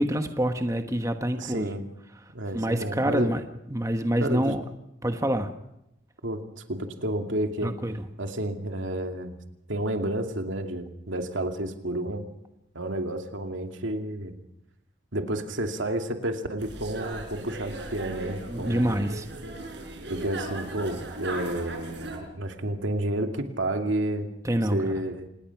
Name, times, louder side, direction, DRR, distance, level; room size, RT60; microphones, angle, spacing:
voice 1, 0.0-1.7 2.5-3.4 3.7-4.6 5.0-5.5 7.6-8.0 18.5-19.3 24.4-24.9, right 1 dB, 15° right, 7 dB, 1.2 m, -26 dB
voice 2, 1.4-1.8 2.3-3.3 4.2-4.5 6.2-6.4 6.7-7.7 8.2-9.4 9.7-12.2 12.7-14.3 15.1-19.0 20.1-24.3 24.7-25.3, right 1 dB, 85° right, 5 dB, 2.5 m, -30 dB
sound 1, 16.6-22.2, right 2 dB, 65° right, 5.0 m, -38 dB
26.5 x 20.0 x 6.0 m, 0.84 s
head